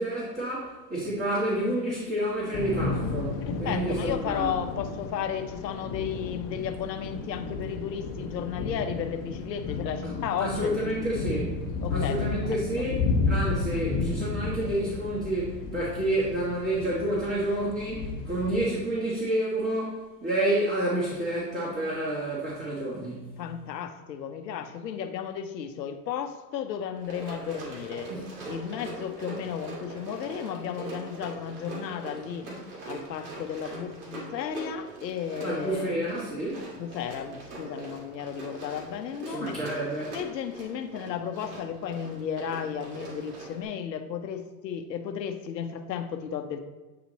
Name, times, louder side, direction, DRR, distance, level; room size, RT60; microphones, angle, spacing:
voice 1, 0.0-4.6 10.0-10.1 10.4-11.5 11.9-23.4 28.1-28.3 32.5-32.6 35.4-36.7 39.3-40.1, right 1 dB, 20° right, -8 dB, 1.8 m, -29 dB
Thunder / Rain, 2.5-18.7, left 3 dB, 45° left, 1.2 m, -32 dB
voice 2, 3.5-11.3 11.8-12.9 23.4-28.1 28.4-32.5 32.9-36.0 36.8-39.6 40.1-46.6, left 8 dB, 90° left, 7 dB, 0.8 m, -34 dB
Run, 27.0-43.7, right 2 dB, 60° right, 1.9 m, -42 dB
8.5 x 2.9 x 4.0 m, 1.2 s
hypercardioid pair, 115°, 49 cm